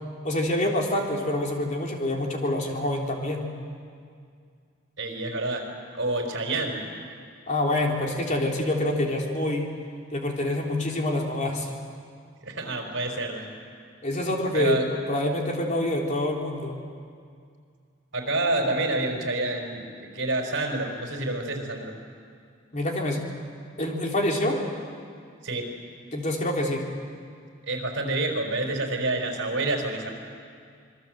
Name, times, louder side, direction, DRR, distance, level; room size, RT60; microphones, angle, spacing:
voice 1, 0.2-3.5 7.5-9.7 10.1-11.7 14.0-14.8 15.1-16.7 22.7-23.2 23.8-24.6 26.1-26.8, left 1 dB, 35° left, 0 dB, 3.4 m, -26 dB
voice 2, 5.0-5.7 5.9-6.8 12.4-13.5 14.5-14.8 18.1-21.9 25.4-25.7 27.6-30.1, right 2 dB, 65° right, 2 dB, 4.8 m, -28 dB
26.5 x 22.0 x 7.8 m, 2.2 s
head